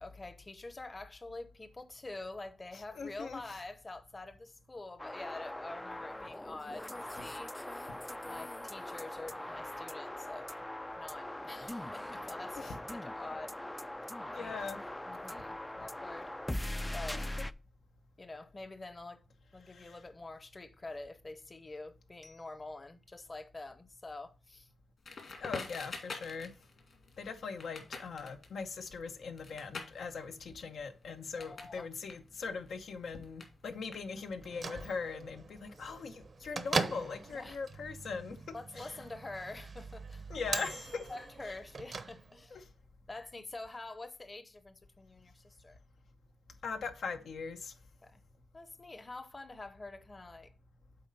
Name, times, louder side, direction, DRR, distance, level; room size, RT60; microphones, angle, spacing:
voice 1, 0.0-6.8 7.1-7.5 8.3-10.5 11.0-13.5 14.3-14.6 15.1-16.3 16.9-17.2 18.2-19.2 19.5-24.7 31.4-31.9 37.3-37.6 38.5-40.3 41.1-42.6 43.1-45.8 48.0-48.2 48.5-50.5, left 2 dB, 30° left, 0.8 m, -46 dB
voice 2, 2.7-3.6 7.9-8.0 12.1-12.2 12.6-12.8 14.3-14.8 15.8-15.9 17.1-17.3 19.7-20.0 25.4-26.5 27.2-39.0 40.3-41.1 41.4-41.6 42.5-42.7 46.6-47.7, left 5 dB, 85° left, 0.9 m, -41 dB
sound 1, 5.0-17.5, left 1 dB, 10° left, 0.3 m, -41 dB
Crackle, 25.0-31.8 32.0-34.5, left 4 dB, 60° left, 2.3 m, -47 dB
Bell / Microwave oven, 34.3-42.6, right 4 dB, 50° right, 0.8 m, -41 dB
7.8 x 4.2 x 5.4 m
cardioid pair, 85°, 0 cm